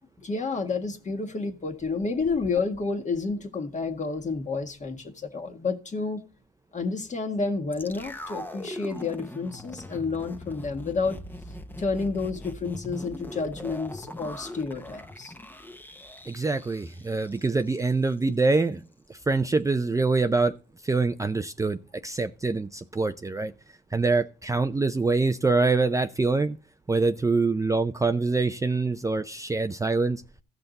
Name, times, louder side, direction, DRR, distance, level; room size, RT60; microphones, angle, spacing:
voice 1, 0.2-6.2 6.7-11.2 11.8-15.3, left 4 dB, 35° left, 1.7 m, -30 dB
sound 1, 7.7-17.9 18.1-18.2, left 1 dB, 10° left, 0.9 m, -41 dB
voice 2, 16.3-18.8 19.1-20.5 20.8-23.5 23.9-26.6 26.9-30.2, right 3 dB, 15° right, 0.5 m, -25 dB
15.0 x 5.7 x 4.0 m
cardioid pair, 90°, 20 cm